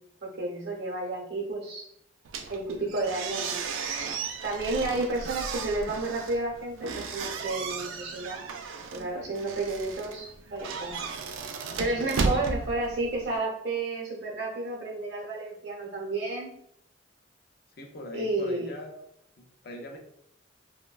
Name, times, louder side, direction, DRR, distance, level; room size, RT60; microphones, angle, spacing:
voice 1, 0.2-1.9 2.5-3.6 4.4-8.4 8.9-11.1 11.8-16.5 18.1-18.7, right 2 dB, 60° right, -1 dB, 0.7 m, -31 dB
sound 1, 2.2-13.4, right 4 dB, 85° right, 0.3 m, -35 dB
voice 2, 12.0-12.4 17.8-19.0 19.4-20.0, left 1 dB, 50° left, 2 dB, 0.4 m, -42 dB
3.0 x 2.2 x 2.3 m, 0.72 s
head